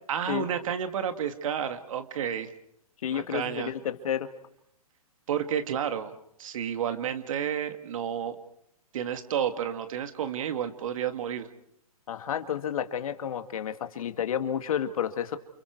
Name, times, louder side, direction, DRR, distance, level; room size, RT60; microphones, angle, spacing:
voice 1, 0.1-2.5 3.1-3.7 5.3-8.4 8.9-11.5, right 9 dB, 60° right, 8 dB, 2.2 m, -31 dB
voice 2, 3.0-4.3 12.1-15.4, left 9 dB, 65° left, 8 dB, 1.9 m, -31 dB
30.0 x 29.0 x 4.7 m, 0.75 s
hypercardioid pair, 125°, 19 cm